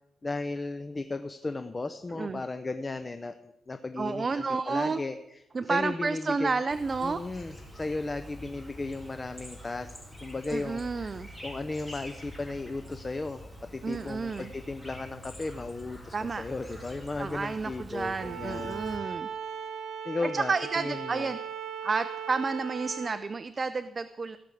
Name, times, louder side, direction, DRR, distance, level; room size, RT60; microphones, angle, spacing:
voice 1, 0.2-5.4 5.7-6.6 7.0-10.0 10.2-18.8 20.0-21.3, left 3 dB, 25° left, 10 dB, 0.6 m, -35 dB
voice 2, 4.0-5.0 5.5-7.2 10.5-11.3 13.8-14.5 16.1-16.4 17.2-19.3 20.3-21.4 21.8-24.4, right 4 dB, 30° right, 12 dB, 0.5 m, -31 dB
Chirp tweet, 6.7-19.0, equal, 5° left, 3.3 m, -46 dB
Bowed string instrument, 18.1-23.2, right 7 dB, 75° right, 2.1 m, -38 dB
16.0 x 6.4 x 8.4 m, 0.90 s
cardioid pair, 125°, 0 cm